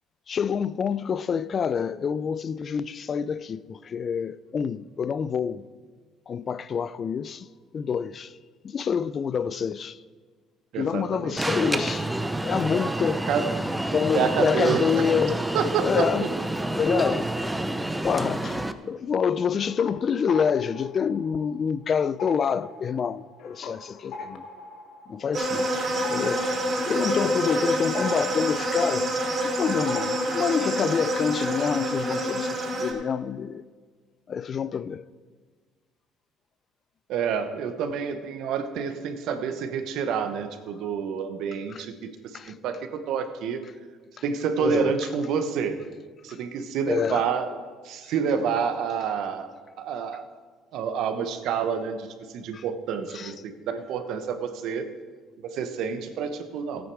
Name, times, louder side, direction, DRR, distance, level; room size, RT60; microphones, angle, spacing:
voice 1, 0.3-5.6 6.3-7.5 7.7-8.3 8.6-10.0 10.8-12.1 12.4-13.3 13.9-15.4 15.8-16.3 16.7-17.3 18.0-24.5 25.1-25.7 26.1-26.5 26.8-29.1 29.4-33.6 34.3-35.0 41.7-41.8 42.3-42.5 44.6-44.9 46.9-47.2 52.5-52.6 53.1-53.3, left 7 dB, 45° left, 0.4 m, -27 dB
voice 2, 10.7-11.8 13.3-13.5 14.1-14.9 15.5-16.1 37.1-43.6 44.2-45.8 46.2-47.6 47.8-50.2 50.7-54.9 55.4-56.9, right 6 dB, 70° right, 1.0 m, -28 dB
Alarm, 11.4-18.7, right 1 dB, 10° right, 0.7 m, -28 dB
sound 1, 19.3-21.8 22.1-29.6 29.9-30.7, left 3 dB, 65° left, 1.2 m, -42 dB
sound 2, 25.3-32.9, right 1 dB, 40° right, 3.3 m, -27 dB
13.5 x 9.1 x 4.7 m
supercardioid pair, 80°, 0 cm